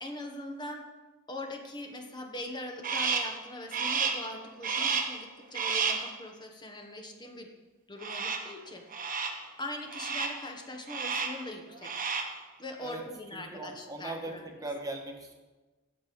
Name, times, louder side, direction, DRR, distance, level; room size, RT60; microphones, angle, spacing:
voice 1, 0.0-0.9 1.3-7.5 7.9-9.0 9.6-11.9 12.6-14.4, left 1 dB, 20° left, 3 dB, 1.3 m, -41 dB
Crow, 2.8-3.4 3.7-4.3 4.6-5.2 5.5-6.1 8.0-8.5 8.9-9.4 9.9-10.4 10.9-11.4 11.8-12.4, right 5 dB, 40° right, 1.3 m, -31 dB
voice 2, 13.3-15.3, right 2 dB, 15° right, 3 dB, 1.5 m, -39 dB
16.5 x 6.8 x 5.3 m, 1.2 s
head